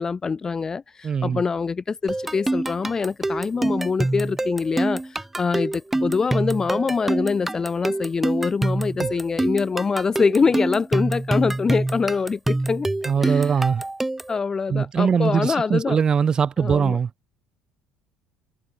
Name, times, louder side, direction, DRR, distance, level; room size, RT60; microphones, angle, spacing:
voice 1, 0.0-12.9 13.2-13.5 14.3-16.0 16.6-17.0, left 5 dB, 25° left, 0.5 m, -24 dB
voice 2, 1.0-1.4 9.0-9.1 13.1-13.8 14.7-17.1, right 6 dB, 30° right, 0.8 m, -21 dB
sound 1, 2.1-14.4, right 2 dB, 10° right, 1.2 m, -25 dB
figure-of-eight pair, 60°, 2 cm